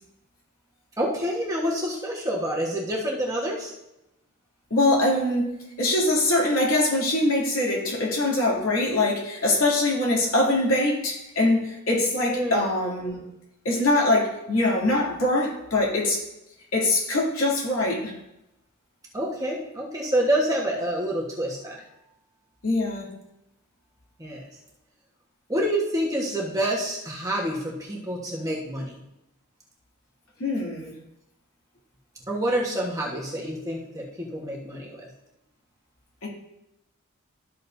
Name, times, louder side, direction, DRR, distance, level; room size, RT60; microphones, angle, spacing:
voice 1, 1.0-3.7 12.3-12.6 19.1-21.8 24.2-24.5 25.5-28.9 32.3-35.1, right 1 dB, 15° right, -3 dB, 1.4 m, -27 dB
voice 2, 4.7-13.2 13.6-16.2 16.7-18.1 22.6-23.1 30.4-30.9 36.2-36.3, left 2 dB, 70° left, -4 dB, 2.9 m, -23 dB
13.0 x 6.4 x 2.7 m, 0.87 s
head